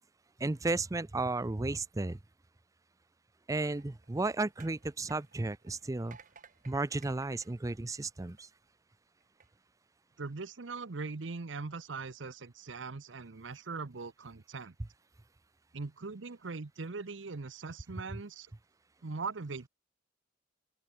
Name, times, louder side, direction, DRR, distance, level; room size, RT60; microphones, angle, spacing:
voice 1, 0.4-2.2 3.5-6.2 6.7-8.5, right 2 dB, 20° right, 0.5 m, -33 dB
sound 1, 3.8-8.7 9.2-9.5, right 6 dB, 45° right, 4.3 m, -59 dB
voice 2, 10.2-14.7 15.7-18.5 19.0-19.7, right 4 dB, 75° right, 0.8 m, -41 dB
open air
head